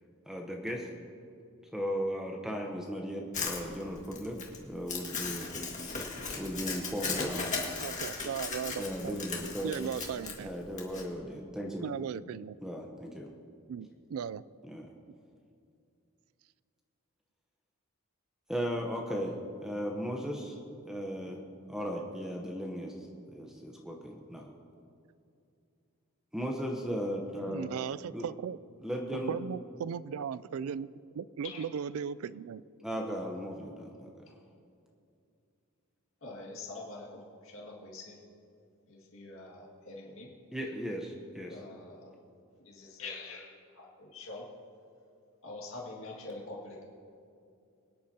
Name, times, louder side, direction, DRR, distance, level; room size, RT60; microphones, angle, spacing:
voice 1, 0.3-0.9 1.7-4.4 4.6-5.5 6.4-7.6 8.8-9.9 10.4-11.9 12.6-13.3 14.7-14.9 18.5-20.6 20.8-21.4 21.7-24.5 26.3-27.7 28.1-28.3 28.8-29.4 32.8-34.1 40.5-41.6, equal, ahead, 0 dB, 0.8 m, -36 dB
Crumpling crinkling, 3.3-11.0, left 4 dB, 35° left, 1.8 m, -37 dB
voice 2, 7.8-9.2 9.6-10.5 11.8-12.6 13.7-14.4 27.5-28.6 29.3-30.9 31.2-32.6, right 7 dB, 70° right, 19 dB, 0.3 m, -37 dB
voice 3, 36.2-38.2 38.9-40.3 41.5-42.1 42.6-44.5 45.4-46.8, left 3 dB, 60° left, -4 dB, 2.1 m, -45 dB
24.5 x 10.5 x 2.9 m, 2.5 s
head